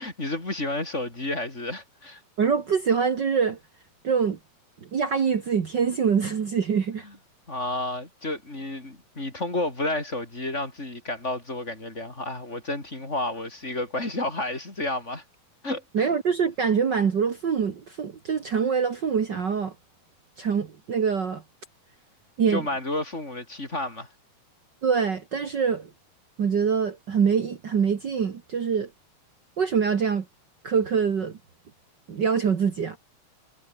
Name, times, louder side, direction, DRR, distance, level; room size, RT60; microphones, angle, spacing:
voice 1, 0.0-2.2 7.0-7.1 7.5-15.2 15.6-16.1 22.5-24.1, left 2 dB, 15° left, 4.0 m, -31 dB
voice 2, 2.4-3.6 4.0-4.4 4.9-7.0 15.9-19.7 20.4-21.4 22.4-22.6 24.8-25.9 26.4-28.9 29.6-30.2 30.6-31.4 32.1-33.0, right 6 dB, 80° right, 0.9 m, -24 dB
omnidirectional pair, 4.7 m